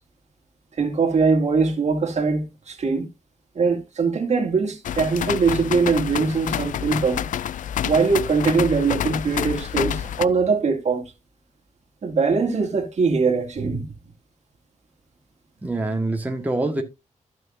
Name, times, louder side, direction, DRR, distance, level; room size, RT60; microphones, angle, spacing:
voice 1, 0.8-3.1 3.6-7.3 7.8-11.0 12.0-13.9, right 4 dB, 60° right, 2.3 m, -21 dB
sound 1, 4.8-10.3, left 10 dB, 75° left, 0.4 m, -28 dB
voice 2, 15.6-16.8, right 2 dB, 10° right, 1.6 m, -25 dB
14.0 x 6.1 x 2.7 m
cardioid pair, 105°, 13 cm